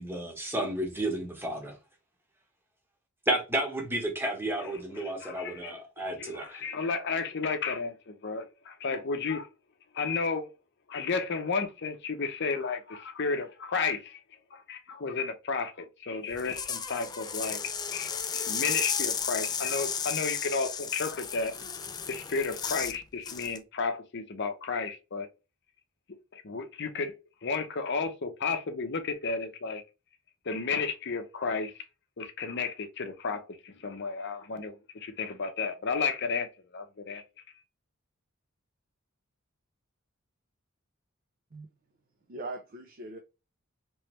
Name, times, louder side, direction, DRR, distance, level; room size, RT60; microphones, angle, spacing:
voice 1, 0.0-1.7 3.3-6.6, right 1 dB, 10° right, 1.1 m, -32 dB
voice 2, 5.0-5.8 6.2-9.5 9.9-10.5 10.9-14.2 14.5-21.5 22.1-25.3 26.3-27.1 27.4-29.8 30.5-31.7 32.2-36.5 36.7-37.2, left 4 dB, 55° left, 0.7 m, -32 dB
sound 1, 16.3-23.0 23.3-23.6, left 7 dB, 20° left, 0.3 m, -34 dB
voice 3, 42.3-43.2, right 2 dB, 40° right, 0.5 m, -40 dB
3.2 x 3.1 x 3.1 m
head